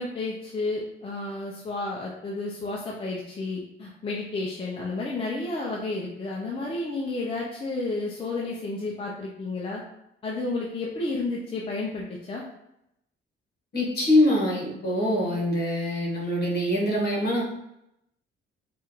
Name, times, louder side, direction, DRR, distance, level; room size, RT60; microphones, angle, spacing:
voice 1, 0.0-9.8 10.2-12.4, left 2 dB, 25° left, -3 dB, 0.5 m, -31 dB
voice 2, 13.7-17.4, left 1 dB, 50° left, -3 dB, 1.4 m, -24 dB
4.8 x 2.4 x 3.0 m, 0.82 s
cardioid pair, 150°, 20 cm